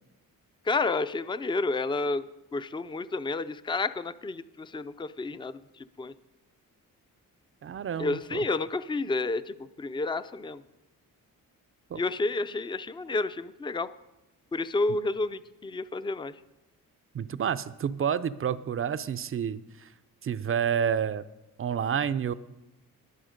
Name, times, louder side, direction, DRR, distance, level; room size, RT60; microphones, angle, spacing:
voice 1, 0.6-2.2 2.5-6.1 8.0-10.6 12.0-13.9 14.5-16.3, left 3 dB, 15° left, 13 dB, 0.4 m, -30 dB
voice 2, 7.6-8.4 11.9-12.0 17.1-19.9 20.2-21.2 21.6-22.3, right 8 dB, 40° right, 14 dB, 0.5 m, -29 dB
20.5 x 7.1 x 5.1 m, 0.95 s
cardioid pair, 110°, 35 cm